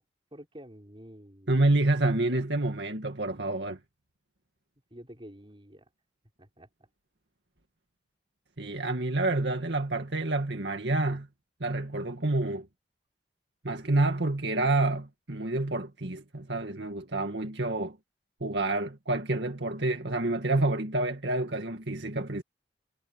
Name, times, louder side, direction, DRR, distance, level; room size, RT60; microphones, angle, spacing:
voice 1, 0.3-1.7 4.9-5.9 6.4-6.7, equal, 30° right, 5.4 m, -49 dB
voice 2, 1.5-3.8 8.6-11.3 11.6-12.7 13.6-18.0 18.4-22.4, right 2 dB, 75° right, 2.1 m, -28 dB
head